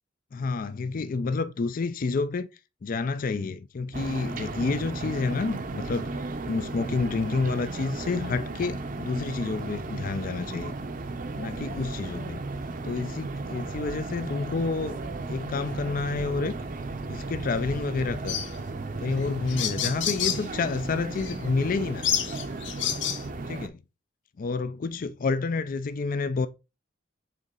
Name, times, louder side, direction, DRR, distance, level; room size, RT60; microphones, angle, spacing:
voice 1, 0.3-2.5 2.8-6.1 6.5-10.7 11.4-12.4 12.8-15.0 15.3-16.6 17.1-18.4 19.0-22.1 23.5-23.8 24.4-26.5, left 4 dB, 45° left, 0.4 m, -29 dB
sound 1, 3.9-23.7, right 3 dB, 45° right, 0.6 m, -35 dB
sound 2, 18.3-18.5 19.2-19.3 19.5-20.5 21.2-21.4 22.0-23.2, left 10 dB, 70° left, 0.7 m, -28 dB
6.7 x 4.0 x 3.7 m
head